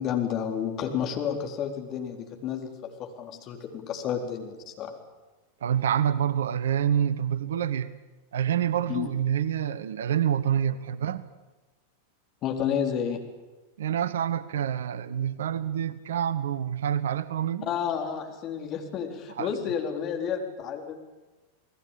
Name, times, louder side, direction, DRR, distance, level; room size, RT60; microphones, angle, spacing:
voice 1, 0.0-4.9 8.9-9.1 12.4-13.2 17.6-21.0, left 8 dB, 35° left, 3 dB, 4.1 m, -31 dB
voice 2, 5.6-7.9 8.3-11.2 13.8-17.7 19.4-19.5, right 9 dB, 60° right, 16 dB, 1.1 m, -27 dB
29.5 x 19.5 x 9.0 m, 1.2 s
figure-of-eight pair, 90°, 0 cm